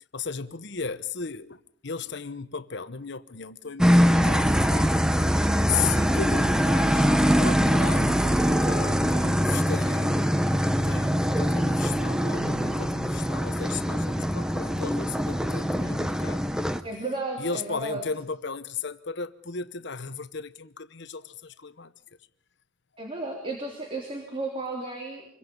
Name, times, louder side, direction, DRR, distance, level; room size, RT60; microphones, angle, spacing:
voice 1, 0.1-5.4 5.6-10.3 10.8-16.5 17.4-21.9, left 5 dB, 60° left, 1.0 m, -35 dB
sound 1, 3.8-16.8, equal, 5° right, 0.9 m, -23 dB
voice 2, 16.8-18.0 23.0-25.3, right 2 dB, 30° right, 3.3 m, -33 dB
26.5 x 22.5 x 5.4 m
head